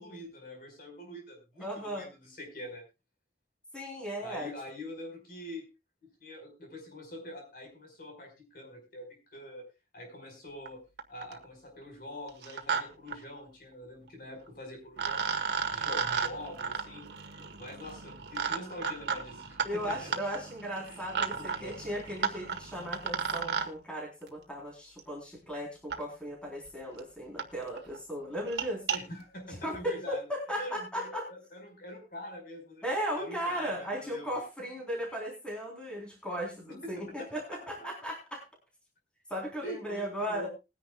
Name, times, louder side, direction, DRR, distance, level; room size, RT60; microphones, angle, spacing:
voice 1, 0.0-2.8 4.2-5.7 6.2-9.6 9.9-10.8 11.1-20.1 20.8-21.0 21.3-21.8 28.9-30.3 30.6-32.8 33.2-34.4 36.7-36.9 37.2-37.9 39.6-40.5, left 1 dB, 55° left, 2 dB, 5.1 m, -45 dB
voice 2, 1.6-2.0 3.7-4.5 19.6-28.8 29.5-31.3 32.8-38.4 39.3-40.5, equal, 5° left, -2 dB, 4.0 m, -36 dB
sound 1, 10.6-10.7 11.0-11.4 12.3-12.8 13.1-13.2 14.5-14.6 15.0-23.7 25.0-25.1 25.9-26.0 26.7-26.8 27.0-27.1 27.4-27.5 27.8-28.0 28.4-29.0, right 6 dB, 80° right, 1.7 m, -34 dB
21.0 x 10.0 x 2.4 m, 0.27 s
head